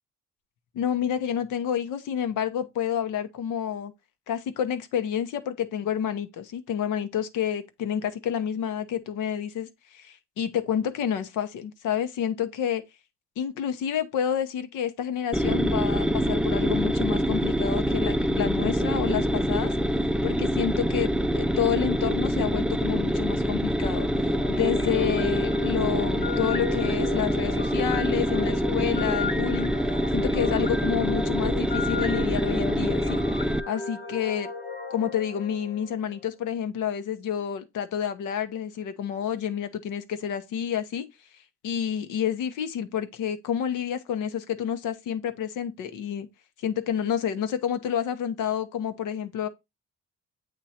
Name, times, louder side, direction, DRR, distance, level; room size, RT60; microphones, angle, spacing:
voice 1, 0.7-3.9 4.3-12.8 13.4-19.8 20.2-29.7 30.1-34.5 34.9-41.1 41.6-46.3 46.6-49.5, left 9 dB, 85° left, 0.9 m, -29 dB
sound 1, 15.3-33.6, equal, 5° right, 0.3 m, -25 dB
sound 2, 23.9-36.1, left 3 dB, 25° left, 0.9 m, -34 dB
7.9 x 3.1 x 4.2 m
cardioid pair, 90°, 30 cm